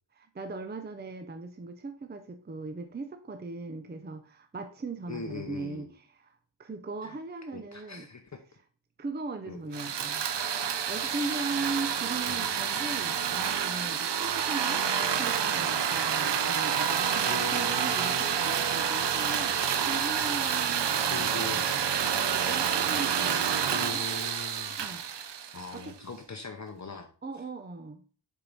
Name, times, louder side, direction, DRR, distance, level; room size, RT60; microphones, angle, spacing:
voice 1, 0.2-8.1 9.0-10.2 10.9-21.9 22.3-24.0 24.8-25.0 27.2-28.0, right 3 dB, 20° right, 7 dB, 0.5 m, -39 dB
voice 2, 5.1-5.9 7.0-7.1 7.5-8.4 9.5-9.6 12.3-12.5 17.3-18.5 21.1-21.7 23.7-24.8 25.5-27.1, left 4 dB, 35° left, 5 dB, 0.8 m, -41 dB
sound 1, 9.7-25.9, right 8 dB, 60° right, 0.7 m, -28 dB
6.6 x 4.6 x 3.9 m, 0.40 s
wide cardioid pair, 100°, 46 cm